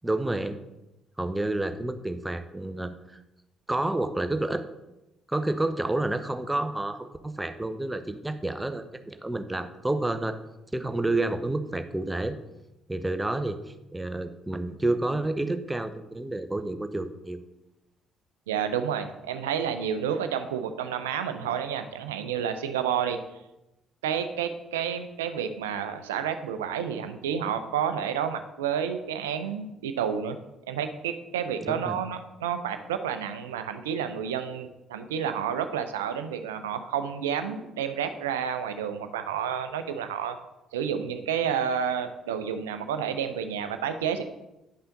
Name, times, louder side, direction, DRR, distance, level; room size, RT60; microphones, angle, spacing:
voice 1, 0.0-0.6 1.2-3.2 3.7-4.7 5.3-10.4 10.7-12.4 12.9-13.6 13.9-17.4 31.7-32.0, right 2 dB, 10° right, 9 dB, 0.7 m, -29 dB
voice 2, 18.5-23.2 24.0-30.4 30.7-40.4 40.7-44.2, right 8 dB, 75° right, 9 dB, 0.5 m, -30 dB
10.0 x 5.6 x 3.8 m, 0.93 s
figure-of-eight pair, 45°, 0 cm